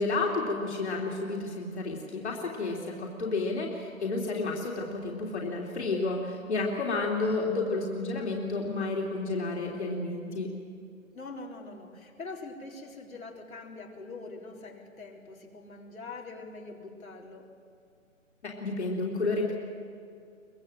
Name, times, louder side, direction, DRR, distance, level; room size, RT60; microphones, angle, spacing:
voice 1, 0.0-10.5 18.4-19.5, left 3 dB, 55° left, -1 dB, 3.2 m, -31 dB
voice 2, 11.1-17.4, left 3 dB, 85° left, 0 dB, 4.1 m, -44 dB
24.0 x 19.0 x 7.7 m, 2.4 s
hypercardioid pair, 175°, 40 cm